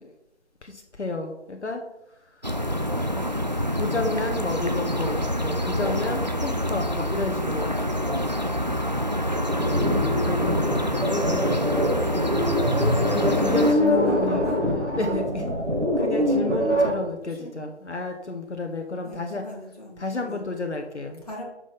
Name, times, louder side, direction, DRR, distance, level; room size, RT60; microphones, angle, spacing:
voice 1, 0.6-1.8 2.4-2.5 3.7-7.7 10.1-10.7 11.1-11.4 12.7-15.5 16.0-19.4 20.0-21.2, left 3 dB, 70° left, 3 dB, 1.2 m, -31 dB
sound 1, 2.4-13.7, equal, 40° right, 0.4 m, -27 dB
sound 2, 9.3-16.9, equal, 80° right, 2.8 m, -24 dB
voice 2, 10.1-11.5 13.8-14.6 17.3-17.7 19.0-20.5 21.2-21.4, left 1 dB, 30° left, -2 dB, 1.8 m, -41 dB
6.3 x 5.9 x 5.3 m, 0.88 s
figure-of-eight pair, 170°, 35 cm